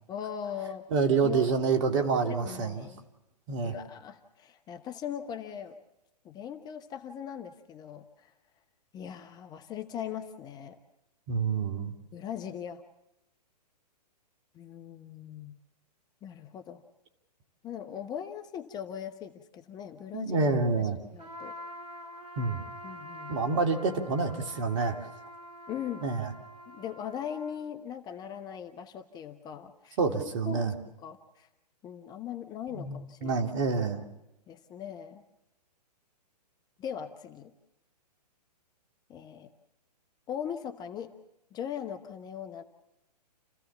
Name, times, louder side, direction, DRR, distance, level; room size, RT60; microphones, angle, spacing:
voice 1, 0.1-0.8 1.2-1.5 2.3-3.0 3.6-5.8 6.2-8.3 8.9-10.8 12.1-12.8 14.5-15.6 16.2-16.8 17.6-20.5 20.8-21.6 22.8-23.5 25.7-26.1 26.7-30.6 31.0-31.5 31.8-33.4 34.5-35.2 36.8-37.5 39.1-39.5 40.3-41.1 41.5-42.6, left 9 dB, 20° left, 7 dB, 0.9 m, -40 dB
voice 2, 0.9-2.9 3.5-3.7 11.3-11.9 20.1-21.0 22.4-22.6 23.3-25.0 26.0-26.3 30.0-30.7 32.7-34.0, right 4 dB, 45° right, 4 dB, 2.5 m, -27 dB
Trumpet, 21.2-27.6, equal, 70° right, 3.2 m, -46 dB
29.5 x 15.5 x 7.2 m, 0.94 s
figure-of-eight pair, 125°, 21 cm